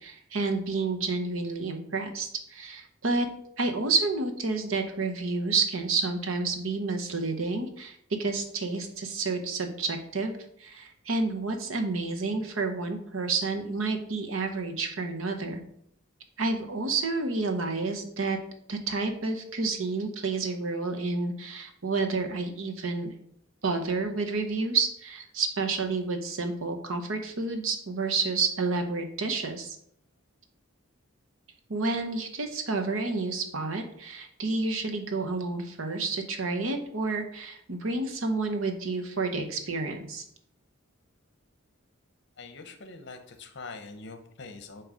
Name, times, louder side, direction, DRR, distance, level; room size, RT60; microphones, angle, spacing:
voice 1, 0.0-3.3 3.6-10.3 10.6-15.6 16.4-18.4 18.7-23.1 23.6-29.8 31.7-40.2, right 3 dB, 75° right, 5 dB, 1.0 m, -30 dB
voice 2, 42.4-44.8, left 3 dB, 55° left, 7 dB, 0.8 m, -43 dB
8.0 x 3.1 x 5.0 m, 0.69 s
head